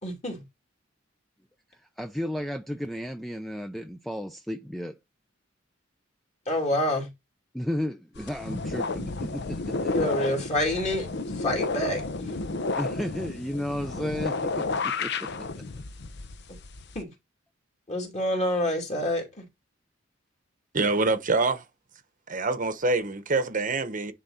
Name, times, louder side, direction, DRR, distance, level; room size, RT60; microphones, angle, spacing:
voice 1, 0.0-0.4 6.5-7.1 9.8-12.3 16.9-17.1 17.9-19.4, left 1 dB, 35° left, 2.7 m, -28 dB
voice 2, 1.7-4.9 7.5-9.9 12.7-15.7, equal, ahead, 0.5 m, -34 dB
sound 1, 8.1-17.0, left 3 dB, 60° left, 0.8 m, -32 dB
voice 3, 20.7-21.6 22.3-24.1, right 3 dB, 45° right, 1.0 m, -25 dB
10.0 x 3.8 x 4.3 m
head